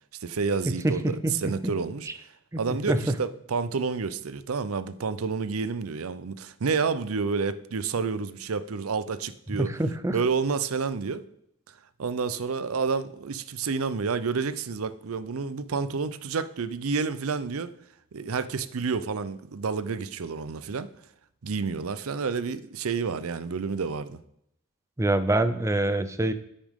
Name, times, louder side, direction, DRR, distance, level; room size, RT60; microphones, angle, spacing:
voice 1, 0.2-1.0 1.3-2.1 2.6-9.7 10.1-11.2 12.0-17.7 18.1-20.9 21.4-24.2, right 5 dB, 90° right, 14 dB, 0.6 m, -29 dB
voice 2, 0.8-1.7 2.1-2.2 2.5-3.2 9.6-10.2 25.0-26.3, right 1 dB, 15° right, 11 dB, 0.5 m, -26 dB
10.0 x 8.9 x 3.6 m, 0.74 s
head